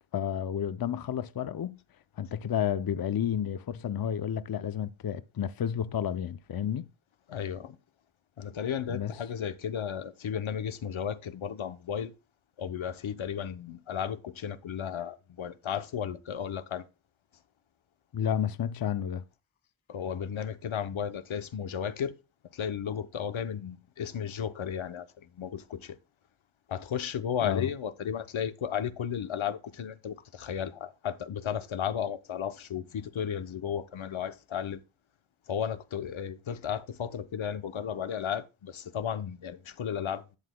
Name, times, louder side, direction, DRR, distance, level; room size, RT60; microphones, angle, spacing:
voice 1, 0.1-1.8 2.2-6.9 8.9-9.2 18.1-19.2 27.4-27.7, left 9 dB, 50° left, 0.6 m, -31 dB
voice 2, 7.3-7.8 8.4-12.1 12.6-16.8 19.9-22.1 22.5-25.1 25.4-26.0 26.7-34.8 35.5-40.4, left 8 dB, 85° left, 0.8 m, -34 dB
11.5 x 8.3 x 2.2 m
cardioid pair, 55°, 46 cm